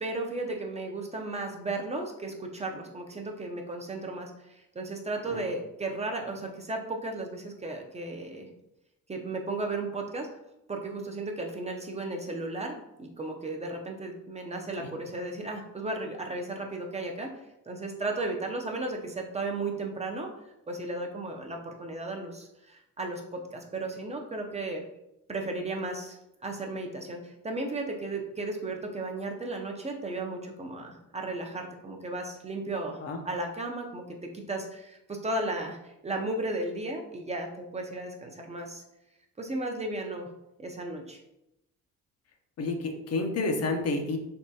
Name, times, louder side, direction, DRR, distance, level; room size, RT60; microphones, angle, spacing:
voice 1, 0.0-8.5 9.1-10.3 10.7-17.3 17.7-20.3 20.7-24.8 25.3-33.0 33.2-38.8 39.4-40.3 40.6-41.2, right 2 dB, 20° right, 2 dB, 0.5 m, -35 dB
voice 2, 42.6-44.2, left 3 dB, 55° left, 4 dB, 0.6 m, -29 dB
3.5 x 2.9 x 2.7 m, 0.86 s
cardioid pair, 90°, 30 cm